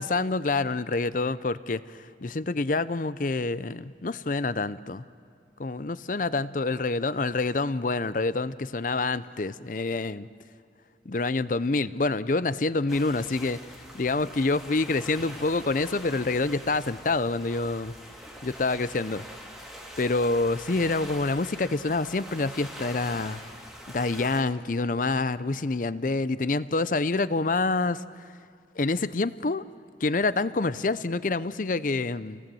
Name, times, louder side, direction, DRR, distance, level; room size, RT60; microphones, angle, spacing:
voice 1, 0.0-5.0 5.6-10.3 11.1-13.6 13.9-17.9 18.4-19.2 20.0-23.4 23.9-28.0 28.8-29.6 30.0-32.4, left 3 dB, 45° left, 16 dB, 0.6 m, -27 dB
sound 1, 12.9-24.4, equal, ahead, 2.4 m, -44 dB
28.0 x 18.5 x 7.7 m, 2.3 s
head